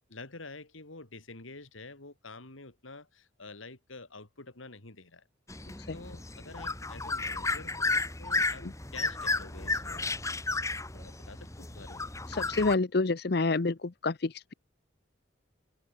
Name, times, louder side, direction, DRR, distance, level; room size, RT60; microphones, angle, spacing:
voice 1, 0.1-5.3 5.5-5.6 5.9-10.1 10.9-12.0, left 3 dB, 80° left, 2.7 m, -48 dB
sound 1, 5.5-12.7, left 3 dB, 15° left, 1.4 m, -33 dB
voice 2, 12.3-14.5, left 3 dB, 50° left, 0.7 m, -28 dB
head